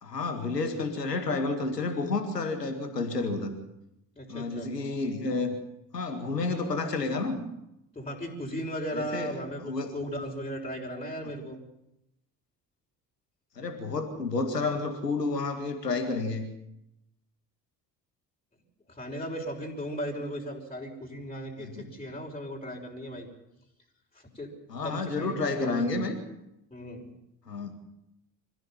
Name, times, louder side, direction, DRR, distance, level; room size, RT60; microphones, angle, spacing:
voice 1, 0.0-3.6 4.3-5.6 5.9-7.4 8.9-9.4 9.6-10.0 13.6-16.5 21.6-21.9 24.7-26.2 27.5-27.7, left 3 dB, 85° left, 7 dB, 2.1 m, -30 dB
voice 2, 4.2-4.7 8.0-11.6 18.9-23.3 24.1-24.5 24.7-26.0 26.7-27.1, equal, 10° left, -3 dB, 5.3 m, -36 dB
25.0 x 15.5 x 7.4 m, 0.87 s
figure-of-eight pair, 45°, 47 cm